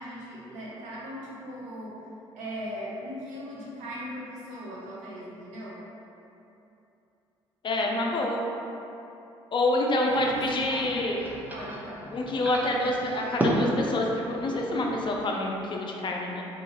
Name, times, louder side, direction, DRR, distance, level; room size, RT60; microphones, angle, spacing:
voice 1, 0.0-2.0 2.3-5.8 10.0-12.1, equal, 65° right, -6 dB, 0.7 m, -39 dB
voice 2, 7.6-8.4 9.5-11.2 12.1-16.4, left 1 dB, 35° left, -1 dB, 0.4 m, -27 dB
sound 1, 10.1-15.1, right 1 dB, 15° right, 0.5 m, -33 dB
2.5 x 2.4 x 2.9 m, 2.8 s
hypercardioid pair, 50°, 13 cm